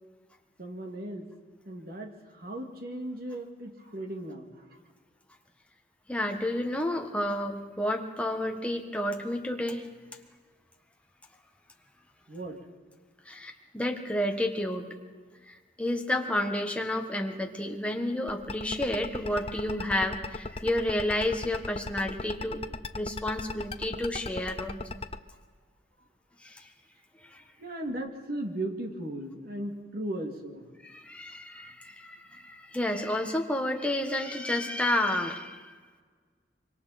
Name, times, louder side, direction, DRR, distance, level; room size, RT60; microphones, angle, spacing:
voice 1, 0.6-1.3 1.7-4.7 12.3-12.6 27.6-30.7 31.6-31.7, right 1 dB, 55° right, 2 dB, 2.4 m, -37 dB
voice 2, 6.1-9.9 13.2-14.9 15.5-22.6 22.9-25.0 26.4-26.7 27.2-27.4 30.8-35.7, left 1 dB, 5° left, 3 dB, 1.5 m, -31 dB
sound 1, 18.3-25.2, left 3 dB, 35° left, 0.7 m, -36 dB
25.0 x 24.0 x 4.3 m, 1.5 s
head